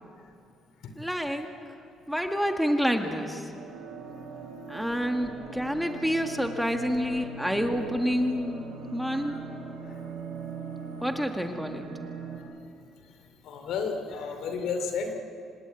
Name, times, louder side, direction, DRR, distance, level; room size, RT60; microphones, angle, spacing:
voice 1, 1.0-1.5 2.1-3.4 4.7-9.4 11.0-11.9, equal, ahead, 4 dB, 1.8 m, -28 dB
sound 1, 3.6-12.4, right 4 dB, 80° right, 6.3 m, -41 dB
voice 2, 13.4-15.1, left 5 dB, 75° left, 6 dB, 3.0 m, -32 dB
26.5 x 18.5 x 9.2 m, 2.5 s
cardioid pair, 120°, 0 cm